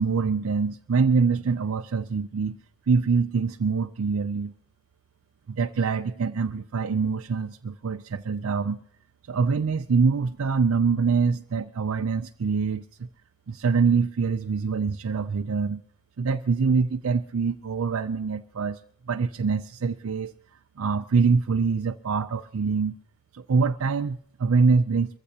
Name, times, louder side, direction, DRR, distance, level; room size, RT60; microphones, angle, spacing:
voice 1, 0.0-2.6 2.9-4.5 5.5-8.8 9.3-13.1 13.5-15.8 16.2-18.8 19.1-20.3 20.8-23.0 23.3-25.2, right 5 dB, 70° right, 0.4 m, -24 dB
22.5 x 15.0 x 2.8 m
head